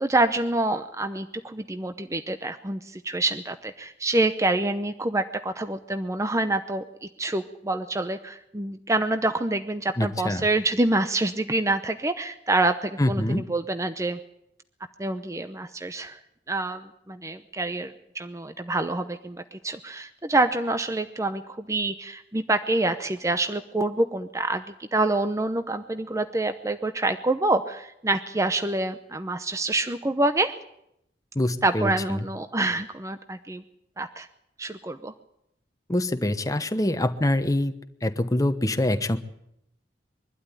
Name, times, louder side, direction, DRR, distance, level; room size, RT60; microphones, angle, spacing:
voice 1, 0.0-14.2 15.0-16.2 16.5-30.5 31.6-33.6 34.0-34.3 34.6-35.1, right 2 dB, 20° right, 9 dB, 0.8 m, -27 dB
voice 2, 10.0-10.4 13.0-13.4 31.3-32.2 35.9-37.7 38.0-39.2, left 1 dB, 20° left, 9 dB, 1.1 m, -25 dB
23.0 x 12.5 x 9.9 m, 0.78 s
head